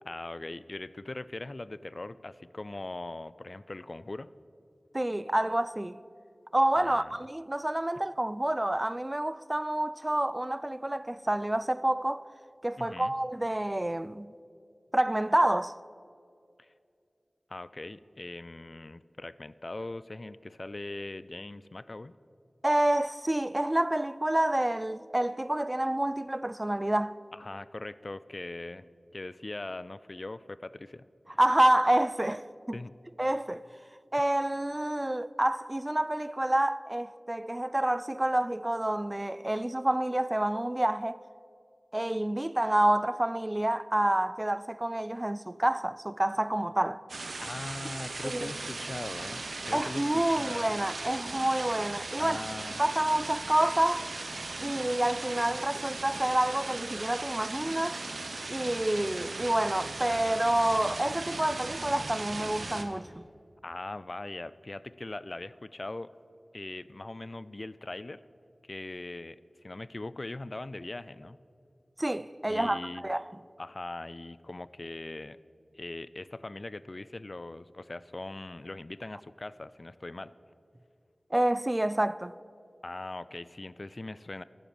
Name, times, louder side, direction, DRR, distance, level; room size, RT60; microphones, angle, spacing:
voice 1, 0.1-4.3 6.8-7.2 12.8-13.1 16.6-16.7 17.5-22.1 27.3-28.8 29.1-31.4 32.7-32.9 34.1-34.2 47.4-50.8 52.1-52.8 63.6-66.1 66.5-68.2 68.7-69.4 69.6-71.4 72.5-73.2 73.6-75.4 75.7-80.3 82.8-84.4, left 2 dB, 50° left, 0.4 m, -41 dB
voice 2, 4.9-6.0 6.5-12.3 12.6-14.3 14.9-15.7 22.6-27.1 31.4-32.8 33.2-33.6 34.1-41.2 41.9-47.0 48.2-48.5 49.7-52.4 52.8-54.1 54.6-58.0 58.5-63.3 72.0-73.3 81.3-82.3, right 1 dB, 25° right, 0.3 m, -28 dB
sound 1, 47.1-62.8, right 3 dB, 85° right, 0.9 m, -38 dB
11.0 x 9.3 x 7.1 m
wide cardioid pair, 45°, 0 cm